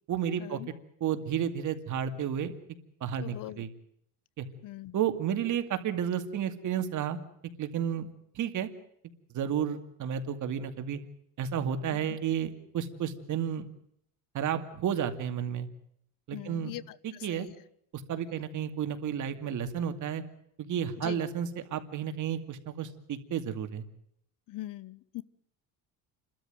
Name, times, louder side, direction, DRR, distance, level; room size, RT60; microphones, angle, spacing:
voice 1, 0.1-0.6 1.0-2.5 3.0-3.7 4.4-4.5 4.9-7.2 7.6-8.1 8.3-8.7 9.3-11.0 11.4-13.7 14.3-15.7 16.3-16.7 17.0-17.5 18.1-20.2 20.6-23.9, right 8 dB, 55° right, 8 dB, 2.5 m, -32 dB
voice 2, 3.2-3.6 4.6-5.0 11.9-12.2 16.3-17.5 21.0-21.2 24.5-25.2, left 16 dB, 60° left, 21 dB, 0.9 m, -42 dB
29.5 x 13.0 x 9.3 m, 0.72 s
cardioid pair, 115°, 37 cm